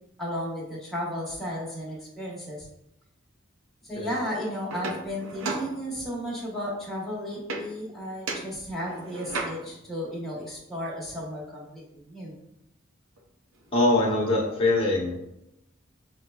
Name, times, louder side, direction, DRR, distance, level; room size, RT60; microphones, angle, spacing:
voice 1, 0.2-2.7 3.8-12.3, equal, ahead, -6 dB, 0.9 m, -34 dB
sound 1, 4.7-6.3 7.5-7.9 8.3-9.9 13.2-13.3 13.5-14.6, right 3 dB, 85° right, 0.5 m, -36 dB
voice 2, 13.7-15.2, left 2 dB, 30° left, -3 dB, 0.8 m, -23 dB
5.7 x 2.1 x 2.2 m, 0.84 s
head